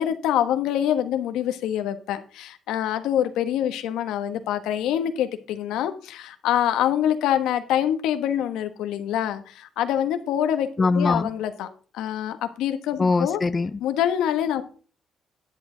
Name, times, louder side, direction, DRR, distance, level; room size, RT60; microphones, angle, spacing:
voice 1, 0.0-11.7 11.9-13.4 13.8-14.6, left 10 dB, 90° left, 9 dB, 1.2 m, -25 dB
voice 2, 10.8-11.3 13.0-13.8, left 3 dB, 25° left, 13 dB, 0.5 m, -22 dB
10.5 x 8.7 x 3.9 m, 0.40 s
cardioid pair, 100°, 0 cm